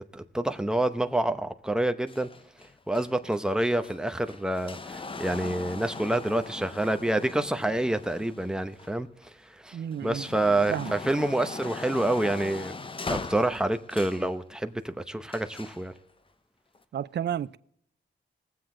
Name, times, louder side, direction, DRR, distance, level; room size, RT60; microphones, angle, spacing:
voice 1, 0.0-2.3 2.9-9.3 9.6-9.8 10.0-12.7 13.1-15.9, right 1 dB, 5° right, 0.8 m, -27 dB
sound 1, 2.1-9.3 9.8-14.3 15.3-15.9 16.7-16.8, left 4 dB, 30° left, 0.7 m, -40 dB
voice 2, 9.7-10.3 10.7-11.0 16.9-17.6, right 9 dB, 65° right, 0.5 m, -32 dB
20.5 x 7.7 x 3.8 m
wide cardioid pair, 120°, 19 cm